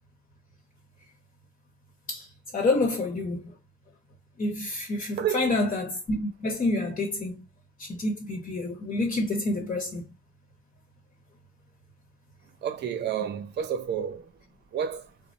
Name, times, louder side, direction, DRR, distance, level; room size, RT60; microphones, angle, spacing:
voice 1, 2.5-3.5 4.4-7.4 7.8-10.0, left 2 dB, 40° left, 1.0 m, -28 dB
voice 2, 5.2-5.5 12.6-14.3 14.7-15.1, right 8 dB, 60° right, 0.7 m, -30 dB
3.2 x 2.0 x 2.6 m
cardioid pair, 90°, 20 cm